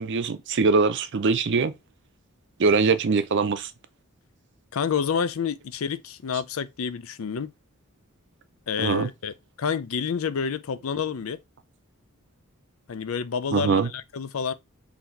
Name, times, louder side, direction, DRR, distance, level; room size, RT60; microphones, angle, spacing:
voice 1, 0.0-1.7 2.6-3.7 8.8-9.1 13.5-13.9, right 4 dB, 55° right, 0.5 m, -22 dB
voice 2, 4.7-7.5 8.7-11.4 12.9-14.5, left 6 dB, 70° left, 0.5 m, -29 dB
4.0 x 2.8 x 4.4 m
head